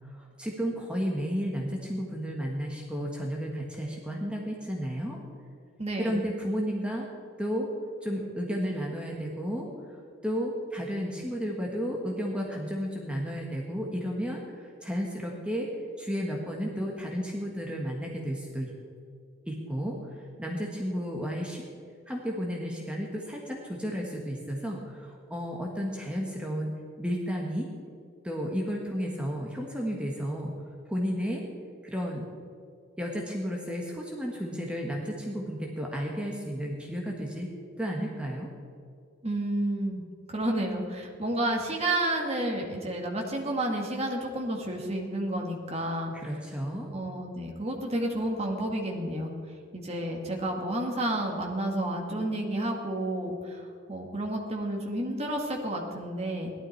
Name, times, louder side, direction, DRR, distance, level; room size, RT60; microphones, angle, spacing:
voice 1, 0.1-5.2 6.0-7.1 7.4-7.7 8.0-10.0 10.2-15.7 16.0-18.7 19.5-20.0 20.4-21.6 22.1-26.7 27.0-27.7 28.2-30.5 30.9-31.4 31.8-32.3 33.0-37.5 37.8-38.5 46.1-46.9, equal, 5° right, -1 dB, 1.4 m, -32 dB
voice 2, 5.8-6.3 39.2-40.0 40.3-46.1 46.9-49.3 49.7-53.6 53.9-56.5, right 1 dB, 30° right, 0 dB, 2.1 m, -30 dB
16.5 x 12.0 x 4.6 m, 2.4 s
head